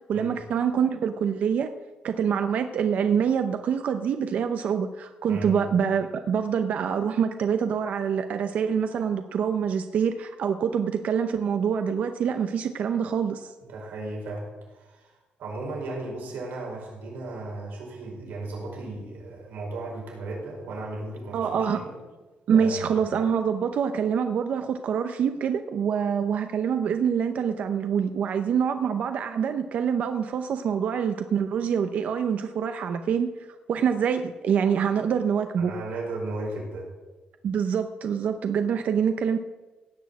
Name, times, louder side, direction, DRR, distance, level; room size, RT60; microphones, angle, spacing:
voice 1, 0.1-1.7 2.0-13.5 21.3-21.8 22.5-33.3 33.7-35.7 37.4-39.4, right 7 dB, 50° right, 8 dB, 0.7 m, -25 dB
voice 2, 13.6-21.5 21.7-22.0 22.5-22.8 35.6-36.9, right 2 dB, 80° right, -2 dB, 5.0 m, -35 dB
17.0 x 6.4 x 8.3 m, 1.2 s
cardioid pair, 180°, 3 cm